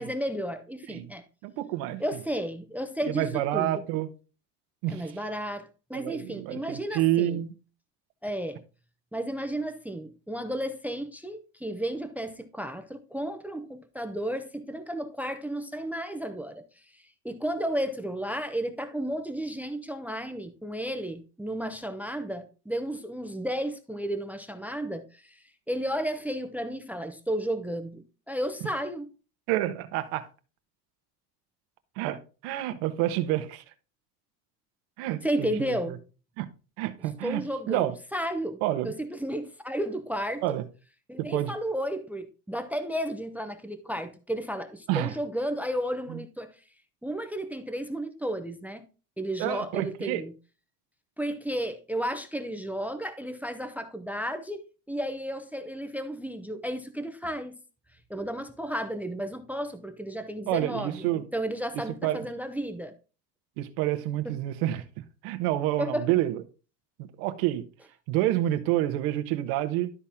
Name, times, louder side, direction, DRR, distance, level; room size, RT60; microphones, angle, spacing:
voice 1, 0.0-1.2 2.0-3.8 4.9-7.4 8.2-8.6 9.1-16.6 16.9-25.4 25.7-29.1 35.2-36.0 37.2-40.4 41.1-46.5 47.0-48.8 49.2-50.3 51.2-57.6 58.1-62.9 64.2-64.4 65.8-66.1, equal, 5° right, 0.6 m, -33 dB
voice 2, 1.4-2.0 3.0-4.1 4.8-5.1 5.9-7.5 29.5-30.3 32.0-33.6 35.0-36.0 36.4-36.5 36.8-37.9 38.6-38.9 40.4-40.6 41.3-41.5 44.9-45.1 46.1-46.2 49.4-50.2 60.5-61.3 62.0-62.3 63.6-64.8 65.2-66.4 67.0-67.6 68.1-69.9, right 14 dB, 70° right, 1.3 m, -28 dB
12.5 x 4.2 x 3.6 m
supercardioid pair, 125°, 47 cm